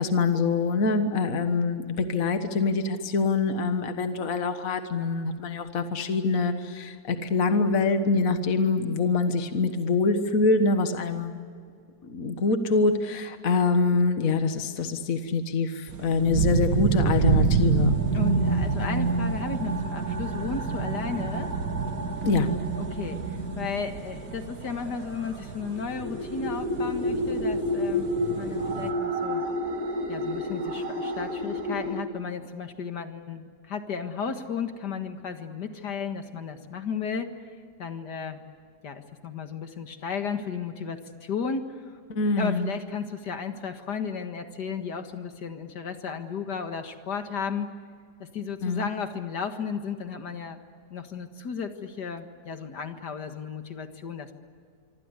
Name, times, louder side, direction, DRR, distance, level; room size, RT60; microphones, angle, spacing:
voice 1, 0.0-11.4 12.1-18.0 22.2-22.5 42.1-42.7 48.6-48.9, left 4 dB, 55° left, 8 dB, 1.8 m, -25 dB
sound 1, 15.9-28.9, right 6 dB, 80° right, 2.2 m, -29 dB
sound 2, 16.5-32.0, right 1 dB, 55° right, 3.1 m, -31 dB
voice 2, 18.1-21.5 22.8-28.1 28.3-29.4 30.1-37.4 37.8-38.4 38.8-42.0 42.3-47.7 48.2-50.6 50.9-54.4, left 6 dB, 75° left, 7 dB, 2.2 m, -34 dB
25.5 x 25.0 x 8.2 m, 2.1 s
omnidirectional pair, 1.8 m